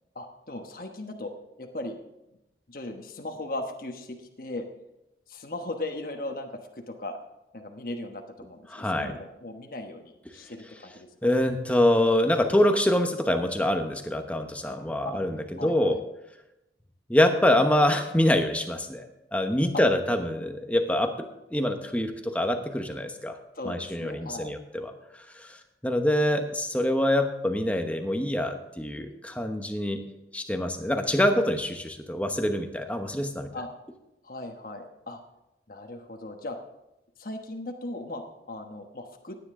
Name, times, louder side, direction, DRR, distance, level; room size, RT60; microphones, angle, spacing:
voice 1, 0.1-1.3 1.6-2.0 2.7-4.7 5.3-7.2 7.5-11.3 15.0-15.2 15.6-16.0 19.7-19.8 23.5-24.6 33.5-33.7 34.2-35.2 35.7-36.6 37.2-39.4, left 2 dB, 50° left, 4 dB, 1.1 m, -37 dB
voice 2, 8.7-9.1 11.2-16.0 17.1-21.1 21.5-23.4 23.6-24.9 25.3-25.6 25.8-30.0 30.3-33.5, left 1 dB, 10° left, 5 dB, 1.0 m, -25 dB
16.5 x 9.8 x 3.7 m, 0.91 s
head